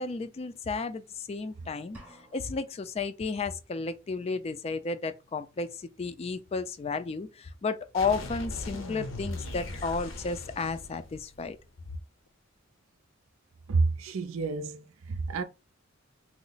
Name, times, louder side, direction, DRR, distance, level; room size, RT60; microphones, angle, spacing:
voice 1, 0.0-2.0 2.3-11.6, left 4 dB, 30° left, 0.3 m, -33 dB
sound 1, 1.9-2.9, equal, 5° right, 0.7 m, -52 dB
sound 2, 7.9-11.6, left 2 dB, 70° left, 0.7 m, -39 dB
voice 2, 13.7-15.4, right 3 dB, 85° right, 0.5 m, -29 dB
3.0 x 2.0 x 3.9 m
head